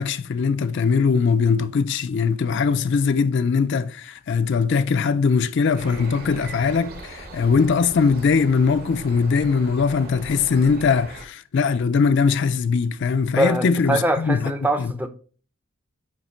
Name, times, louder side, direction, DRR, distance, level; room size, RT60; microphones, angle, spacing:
voice 1, 0.0-14.5 14.8-14.9, left 5 dB, 50° left, 0.4 m, -21 dB
sound 1, 5.8-11.3, right 2 dB, 40° right, 1.0 m, -40 dB
voice 2, 13.4-15.1, right 1 dB, 10° right, 0.5 m, -23 dB
9.2 x 3.1 x 4.3 m
head